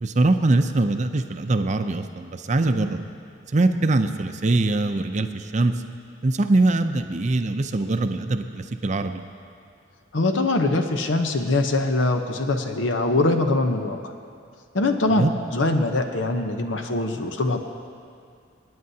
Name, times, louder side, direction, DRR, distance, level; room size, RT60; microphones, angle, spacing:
voice 1, 0.0-3.0 3.5-5.7 6.2-9.2 15.1-15.3, right 2 dB, 40° right, 8 dB, 0.5 m, -22 dB
voice 2, 10.1-14.0 14.7-15.3 15.5-17.6, left 2 dB, 85° left, 5 dB, 0.9 m, -22 dB
27.5 x 9.5 x 2.8 m, 2.3 s
head